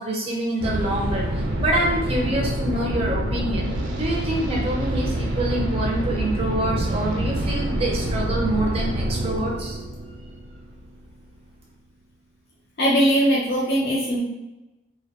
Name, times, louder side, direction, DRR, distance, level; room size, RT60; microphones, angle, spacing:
voice 1, 0.0-9.8, right 1 dB, 30° right, -1 dB, 0.5 m, -26 dB
sound 1, 0.6-11.4, right 1 dB, 90° right, 0.4 m, -26 dB
voice 2, 12.8-14.2, equal, 55° left, -6 dB, 0.5 m, -20 dB
2.2 x 2.1 x 2.7 m, 1.0 s
head